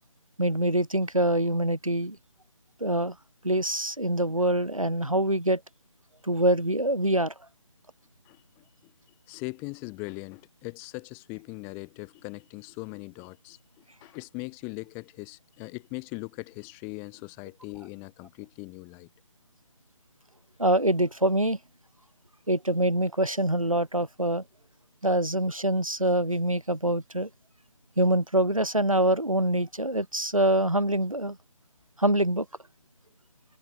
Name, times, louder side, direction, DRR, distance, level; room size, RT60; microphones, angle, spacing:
voice 1, 0.4-2.2 2.8-3.2 3.4-5.6 6.2-7.3 20.6-21.6 22.5-24.4 25.0-27.3 28.0-31.4 32.0-32.5, right 1 dB, 85° right, 6.3 m, -25 dB
voice 2, 8.2-8.9 9.3-19.1, left 31 dB, 15° left, 4.5 m, -40 dB
figure-of-eight pair, 155°, 17 cm